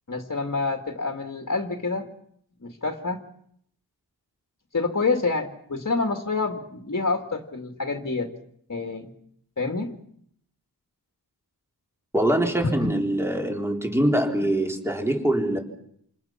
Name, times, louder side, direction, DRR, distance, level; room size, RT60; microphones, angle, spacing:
voice 1, 0.1-2.1 2.6-3.2 4.7-8.3 8.7-9.1 9.6-9.9, left 3 dB, 40° left, 4 dB, 2.5 m, -27 dB
voice 2, 12.1-15.6, right 1 dB, 5° right, 2 dB, 3.9 m, -23 dB
29.0 x 28.5 x 6.0 m, 0.69 s
wide cardioid pair, 125°, 43 cm